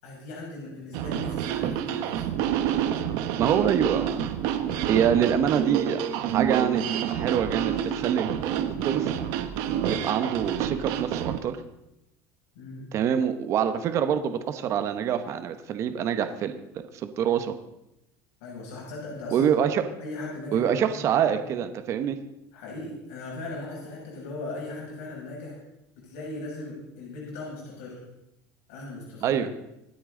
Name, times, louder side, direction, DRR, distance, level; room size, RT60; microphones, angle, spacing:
voice 1, 0.0-2.3 5.0-5.1 12.5-12.8 18.4-19.5 20.0-21.4 22.5-25.6 25.9-28.0 28.7-29.4, left 2 dB, 90° left, -4 dB, 6.5 m, -38 dB
sound 1, 0.9-11.4, right 10 dB, 65° right, 1.3 m, -28 dB
voice 2, 3.4-4.2 4.9-6.0 6.3-6.8 7.1-9.2 9.9-11.6 12.9-16.5 17.0-17.6 19.3-19.8 20.5-22.2 29.2-29.5, right 8 dB, 40° right, 9 dB, 1.0 m, -25 dB
25.5 x 8.6 x 3.9 m, 0.87 s
cardioid pair, 155°, 8 cm